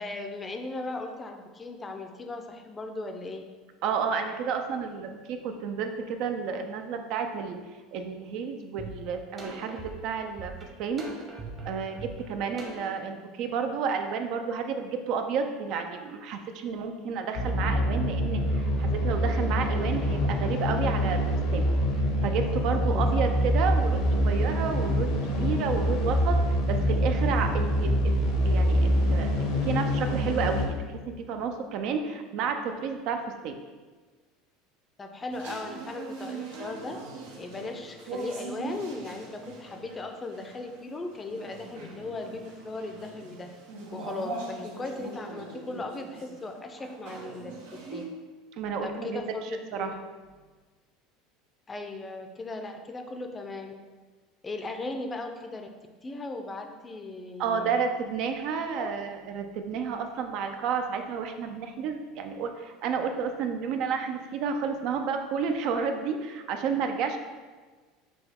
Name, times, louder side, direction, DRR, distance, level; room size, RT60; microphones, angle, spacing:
voice 1, 0.0-3.4 22.9-23.2 35.0-37.0 37.3-43.5 43.9-47.5 47.9-48.0 48.8-50.0 51.7-53.7 54.4-55.7 56.0-57.8 58.8-58.9, left 2 dB, 20° left, 4 dB, 0.5 m, -37 dB
voice 2, 3.8-7.6 7.9-10.5 10.8-11.1 11.6-21.2 21.5-21.7 22.2-26.4 26.7-33.6 48.6-49.2 49.7-49.9 57.4-67.2, right 6 dB, 60° right, 6 dB, 0.4 m, -31 dB
sound 1, 8.8-8.9 9.4-13.0, right 3 dB, 30° right, 0.9 m, -41 dB
sound 2, 17.4-30.7, equal, 75° left, 0.8 m, -25 dB
sound 3, 35.3-48.0, right 3 dB, 85° right, 0.8 m, -41 dB
5.9 x 2.3 x 3.5 m, 1.4 s
supercardioid pair, 105°, 0 cm